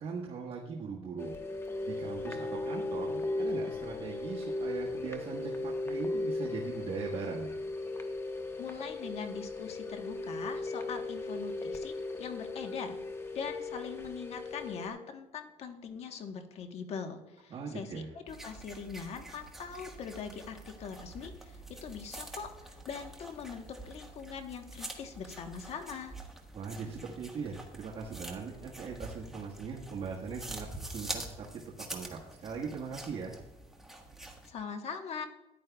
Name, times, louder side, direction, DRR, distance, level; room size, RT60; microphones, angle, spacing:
voice 1, 0.0-1.3 1.8-7.5 17.5-18.1 26.5-31.6 31.9-33.3, right 5 dB, 50° right, -3 dB, 1.4 m, -40 dB
sound 1, 1.2-14.9, left 2 dB, 20° left, 1.1 m, -37 dB
voice 2, 8.6-13.0 13.3-26.2 34.4-35.3, left 6 dB, 60° left, 6 dB, 1.2 m, -42 dB
sound 2, 18.3-34.5, right 1 dB, 5° right, 1.5 m, -46 dB
14.0 x 10.5 x 2.3 m, 0.98 s
cardioid pair, 115°, 12 cm